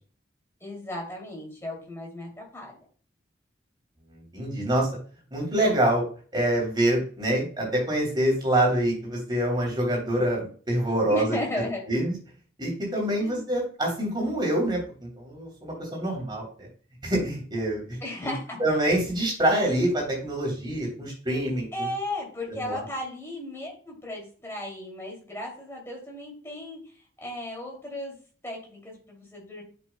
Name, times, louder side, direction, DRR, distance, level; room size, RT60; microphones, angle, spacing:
voice 1, 0.6-2.7 11.1-11.8 13.2-13.5 18.0-18.6 21.7-26.9 27.2-28.2 28.4-29.6, left 1 dB, 15° left, -1 dB, 2.8 m, -35 dB
voice 2, 4.1-4.9 5.3-6.0 6.3-11.3 11.9-12.2 12.6-16.7 17.0-17.8 18.2-18.3 18.6-21.9 22.6-22.8, right 1 dB, 25° right, -2 dB, 3.4 m, -26 dB
10.0 x 6.1 x 2.3 m, 0.42 s
head